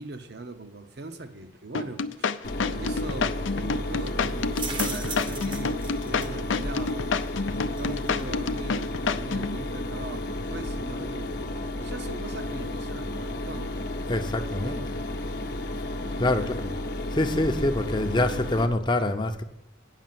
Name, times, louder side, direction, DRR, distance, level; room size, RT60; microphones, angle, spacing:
voice 1, 0.0-7.2 7.8-11.3 11.8-13.8 14.6-15.0 16.1-16.6, right 2 dB, 60° right, 0.8 m, -40 dB
sound 1, 1.7-9.6, left 5 dB, 85° left, 0.5 m, -28 dB
Mechanisms, 2.4-18.7, left 1 dB, 55° left, 0.8 m, -32 dB
sound 2, 2.6-13.2, right 4 dB, 25° right, 0.8 m, -43 dB
voice 2, 14.1-14.8 16.2-16.5 17.1-19.4, left 1 dB, 25° left, 0.6 m, -25 dB
9.1 x 6.3 x 7.6 m
head